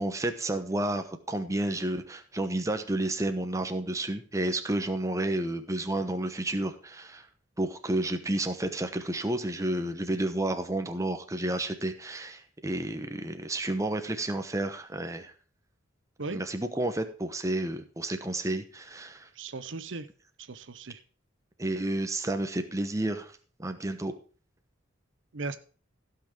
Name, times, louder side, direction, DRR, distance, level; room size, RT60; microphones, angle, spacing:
voice 1, 0.0-7.3 7.6-15.3 16.3-19.3 21.6-23.3 23.6-24.1, right 1 dB, 15° right, 7 dB, 1.0 m, -31 dB
voice 2, 19.4-20.1 20.4-21.0 25.3-25.6, right 3 dB, 70° right, 12 dB, 0.8 m, -37 dB
15.5 x 6.0 x 5.0 m, 0.40 s
head